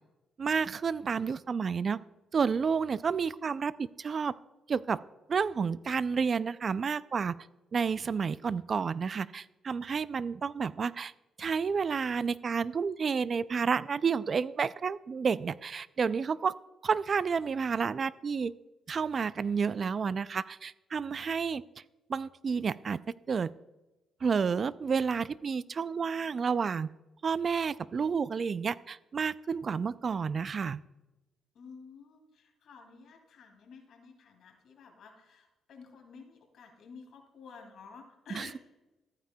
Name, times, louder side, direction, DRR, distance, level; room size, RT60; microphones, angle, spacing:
voice 1, 0.4-2.0 2.3-4.3 4.7-5.0 5.3-7.4 7.7-11.1 11.4-16.6 16.8-18.5 18.9-21.6 22.1-23.0 23.3-23.5 24.2-26.9 27.2-30.8 38.3-38.5, right 5 dB, 45° right, 18 dB, 0.3 m, -30 dB
voice 2, 31.5-38.6, left 5 dB, 70° left, 3 dB, 2.4 m, -52 dB
14.5 x 9.1 x 2.3 m, 1.0 s
cardioid pair, 90°, 0 cm